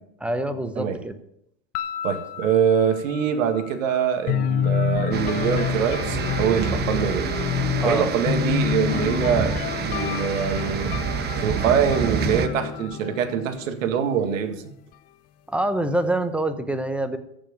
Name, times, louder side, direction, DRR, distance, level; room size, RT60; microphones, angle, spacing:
voice 1, 0.2-1.1 7.8-8.1 15.5-17.2, right 1 dB, 5° right, 10 dB, 0.8 m, -25 dB
sound 1, 1.7-14.0, left 11 dB, 55° left, 1.2 m, -41 dB
voice 2, 2.0-7.3 7.8-10.9 11.4-14.6, right 8 dB, 85° right, 7 dB, 1.9 m, -24 dB
sound 2, 4.3-14.1, left 8 dB, 25° left, 0.4 m, -28 dB
sound 3, 5.1-12.5, right 6 dB, 25° right, 1.1 m, -28 dB
14.5 x 6.1 x 8.6 m, 0.76 s
supercardioid pair, 145°, 38 cm